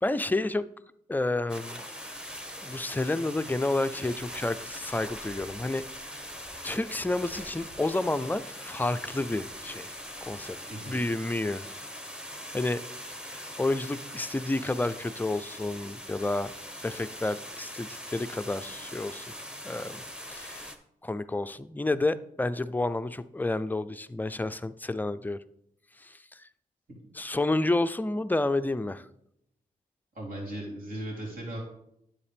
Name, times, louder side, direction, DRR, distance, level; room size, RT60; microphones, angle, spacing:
voice 1, 0.0-0.6 1.1-1.8 2.6-5.8 6.6-9.9 10.2-10.6 10.9-11.7 12.5-12.8 13.3-16.5 16.8-19.3 19.6-20.0 20.3-20.7 21.0-25.4 26.0-26.5 27.1-29.1, left 2 dB, 10° left, 12 dB, 0.4 m, -30 dB
sound 1, 1.5-20.8, equal, 5° right, 1.1 m, -42 dB
voice 2, 10.7-11.0 30.1-31.6, right 1 dB, 65° right, -3 dB, 3.3 m, -37 dB
9.8 x 7.3 x 3.5 m, 0.78 s
cardioid pair, 70°, 16 cm